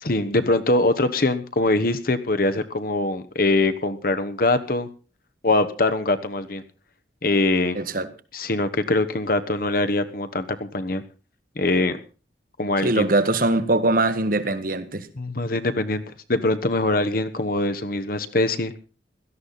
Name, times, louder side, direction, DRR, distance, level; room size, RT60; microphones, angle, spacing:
voice 1, 0.0-4.9 5.4-6.6 7.2-7.8 8.3-11.0 11.6-12.0 12.6-13.1 15.2-16.0 16.3-18.7, left 2 dB, 55° left, 10 dB, 1.2 m, -23 dB
voice 2, 7.7-8.1 12.8-15.1, right 2 dB, 50° right, 11 dB, 1.3 m, -22 dB
17.0 x 13.5 x 4.1 m, 0.34 s
head